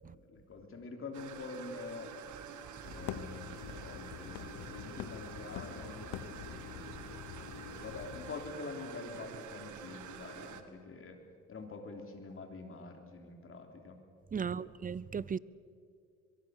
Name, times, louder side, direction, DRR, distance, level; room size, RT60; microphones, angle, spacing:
voice 1, 0.0-2.1 2.9-3.4 3.7-6.9 7.3-11.2 11.5-14.0 14.4-14.6, left 3 dB, 45° left, 3.5 m, -46 dB
sound 1, 1.1-10.6, right 8 dB, 75° right, 1.7 m, -48 dB
sound 2, 2.8-8.5, left 10 dB, 70° left, 1.0 m, -45 dB
voice 2, 14.3-15.4, right 6 dB, 30° right, 0.5 m, -36 dB
22.5 x 22.5 x 6.6 m
cardioid pair, 90°, 30 cm